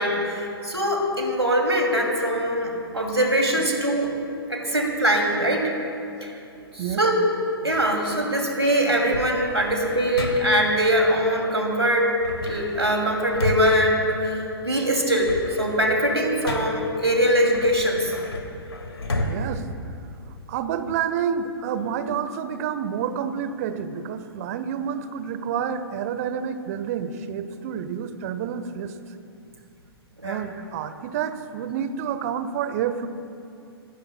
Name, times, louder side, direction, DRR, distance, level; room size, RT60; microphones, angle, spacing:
voice 1, 0.0-4.1 4.5-5.7 6.2-6.4 6.7-7.2 7.6-12.1 12.4-18.1 30.2-30.4, equal, 85° right, 1 dB, 2.6 m, -22 dB
sound 1, 9.1-10.8 12.2-14.7 15.0-17.0 17.5-20.5, left 1 dB, 70° left, 1.9 m, -32 dB
voice 2, 19.2-19.6 20.5-28.9 30.2-33.1, right 8 dB, 35° right, 11 dB, 1.0 m, -29 dB
27.0 x 20.0 x 2.2 m, 2.6 s
figure-of-eight pair, 115°, 13 cm